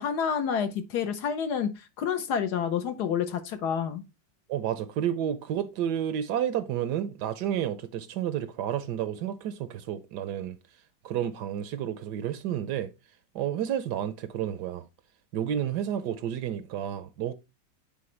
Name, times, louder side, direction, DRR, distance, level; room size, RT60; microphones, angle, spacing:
voice 1, 0.0-1.7 2.0-4.0, left 7 dB, 65° left, 1.2 m, -28 dB
voice 2, 4.5-10.6 11.0-12.9 13.3-14.8 15.3-17.3, right 10 dB, 70° right, 1.1 m, -31 dB
8.7 x 4.4 x 3.1 m
omnidirectional pair, 2.0 m